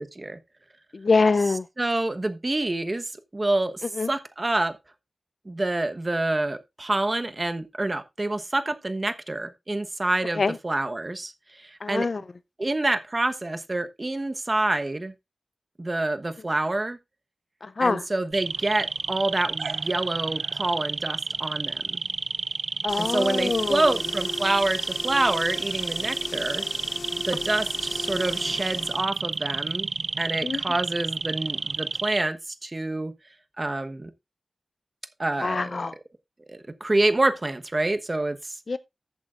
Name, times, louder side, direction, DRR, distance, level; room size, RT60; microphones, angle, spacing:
voice 1, 0.9-1.6 4.0-4.1 10.4-10.6 11.8-12.2 17.6-18.0 22.8-23.9 30.4-30.6 35.4-35.9 38.7-38.8, left 4 dB, 60° left, 0.5 m, -24 dB
voice 2, 1.8-4.8 5.4-11.3 11.6-12.1 12.6-15.1 15.8-17.0 17.8-22.0 23.0-26.6 27.3-29.9 30.2-32.4 32.6-33.1 33.6-34.1 35.2-35.9 36.5-38.5, right 2 dB, 30° right, 1.1 m, -27 dB
sound 1, 18.3-32.2, right 4 dB, 80° right, 0.5 m, -30 dB
sound 2, 22.9-29.0, left 3 dB, 75° left, 2.5 m, -37 dB
14.5 x 8.2 x 2.5 m
wide cardioid pair, 90°, 0 cm